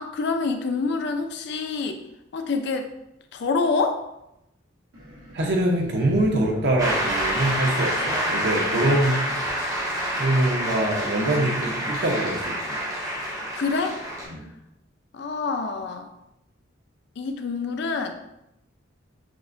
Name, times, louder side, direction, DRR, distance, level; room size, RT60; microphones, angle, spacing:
voice 1, 0.0-2.0 2.3-2.9 3.3-4.0 13.5-14.0 15.1-16.1 17.2-18.1, left 4 dB, 60° left, 6 dB, 0.4 m, -26 dB
sound 1, 4.9-8.4, equal, 85° right, 1.1 m, -42 dB
voice 2, 5.3-9.2 10.2-12.8 14.3-14.5, right 1 dB, 60° right, 0 dB, 0.7 m, -24 dB
Shout / Cheering / Applause, 6.8-14.2, equal, 20° right, 0.6 m, -27 dB
6.2 x 2.1 x 2.6 m, 0.86 s
head